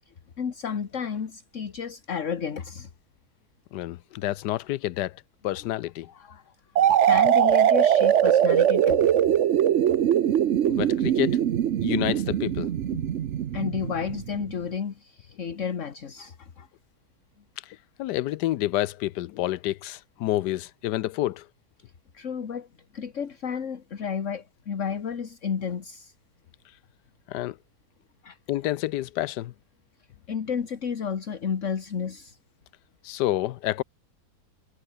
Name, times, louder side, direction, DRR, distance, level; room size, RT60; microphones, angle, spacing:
voice 1, 0.4-2.9 6.1-6.4 6.8-9.1 12.8-13.0 13.5-16.7 22.1-22.7 22.9-26.1 28.2-28.4 30.3-32.4, left 7 dB, 50° left, 1.7 m, -32 dB
voice 2, 3.7-5.2 5.4-6.1 10.7-11.4 11.8-12.7 18.0-21.4 27.3-27.6 28.5-29.5 33.0-33.8, left 15 dB, 85° left, 1.2 m, -28 dB
sound 1, 6.8-14.4, right 10 dB, 55° right, 0.9 m, -21 dB
omnidirectional pair, 1.8 m